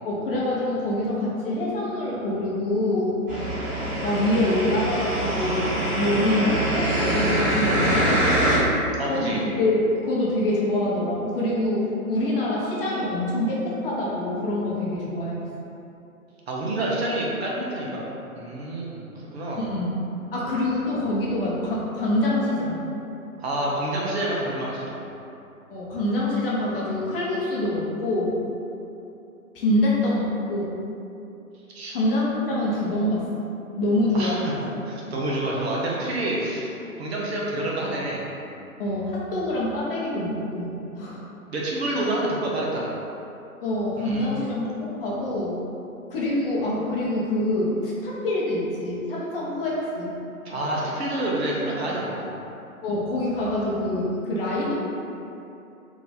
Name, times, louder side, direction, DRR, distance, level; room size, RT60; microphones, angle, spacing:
voice 1, 0.0-3.2 4.0-5.7 6.0-8.1 9.1-15.4 19.6-19.9 20.3-22.8 25.7-28.4 29.5-30.8 31.9-33.2 33.8-34.6 38.8-41.2 43.6-45.6 46.1-50.1 52.8-54.7, left 1 dB, 40° left, -6 dB, 0.8 m, -25 dB
sound 1, 3.3-8.6, right 1 dB, 20° right, 1.1 m, -24 dB
voice 2, 9.0-9.4 16.5-18.1 18.3-19.0 19.3-19.6 23.4-25.0 31.7-32.0 34.1-34.5 34.8-38.2 41.5-42.9 44.0-44.4 50.4-52.4, right 1 dB, 45° right, -4 dB, 0.7 m, -28 dB
3.0 x 2.5 x 4.0 m, 2.8 s
figure-of-eight pair, 130°, 44 cm